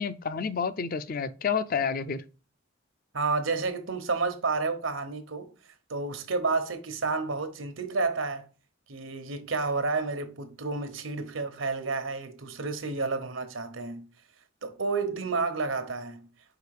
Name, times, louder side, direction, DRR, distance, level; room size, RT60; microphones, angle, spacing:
voice 1, 0.0-2.2, left 6 dB, 45° left, 0.5 m, -29 dB
voice 2, 3.1-5.5 5.9-8.4 8.9-14.0 14.6-16.3, right 3 dB, 85° right, 1.1 m, -30 dB
5.0 x 4.9 x 4.9 m
head